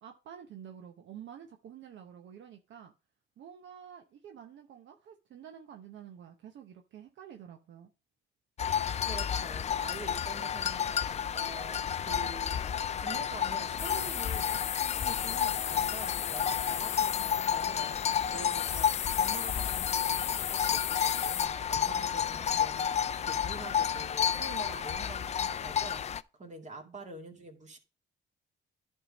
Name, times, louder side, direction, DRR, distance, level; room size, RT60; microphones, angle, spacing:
voice 1, 0.0-2.9 3.4-7.9 26.8-27.0, right 9 dB, 70° right, 0.9 m, -49 dB
sound 1, 8.6-26.2, left 8 dB, 35° left, 0.4 m, -31 dB
voice 2, 9.1-12.6 13.0-22.8 23.3-26.0 26.4-27.8, right 2 dB, 35° right, 2.1 m, -46 dB
sound 2, 13.8-21.5, left 12 dB, 85° left, 0.8 m, -36 dB
11.0 x 3.7 x 5.1 m
cardioid pair, 90°, 20 cm